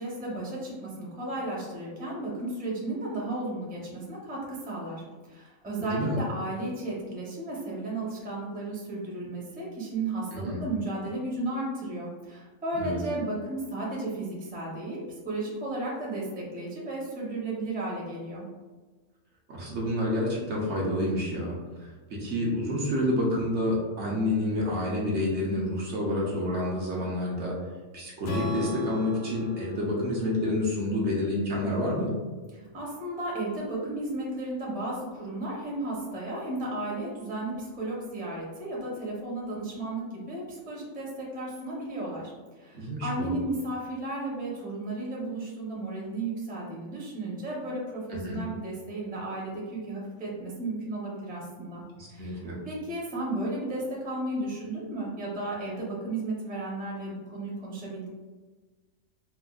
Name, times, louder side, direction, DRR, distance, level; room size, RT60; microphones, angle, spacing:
voice 1, 0.0-18.4 32.5-51.8 52.1-58.1, right 2 dB, 10° right, -5 dB, 0.6 m, -34 dB
voice 2, 5.8-6.2 10.3-10.6 12.7-13.0 19.5-21.5 21.8-27.6 27.9-32.2 42.7-43.3 48.1-48.4 52.2-52.6, left 1 dB, 60° right, -4 dB, 1.0 m, -29 dB
Strum, 28.2-32.4, left 3 dB, 65° left, 0.9 m, -37 dB
4.4 x 2.3 x 2.3 m, 1.3 s
omnidirectional pair, 1.4 m